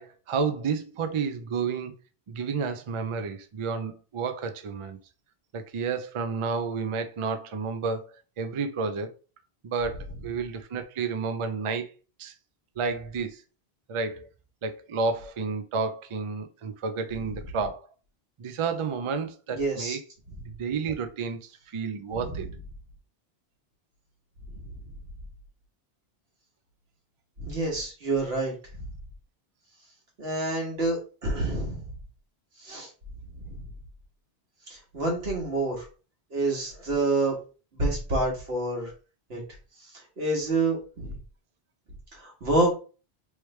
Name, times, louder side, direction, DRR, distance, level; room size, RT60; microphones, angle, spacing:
voice 1, 0.0-1.9 2.3-5.0 5.5-9.1 9.6-11.9 12.2-12.3 12.8-13.4 13.9-14.3 14.6-17.9 18.4-20.0 20.5-22.5, right 5 dB, 50° right, 0.3 m, -31 dB
voice 2, 19.5-20.0 22.1-22.4 24.7-24.8 27.4-28.5 30.2-31.8 32.6-32.9 33.3-33.6 34.7-35.9 36.3-37.4 37.7-38.9 39.3-39.4 39.8-41.2 42.1-42.7, right 2 dB, 75° right, 1.6 m, -28 dB
3.2 x 3.2 x 3.1 m
omnidirectional pair, 1.1 m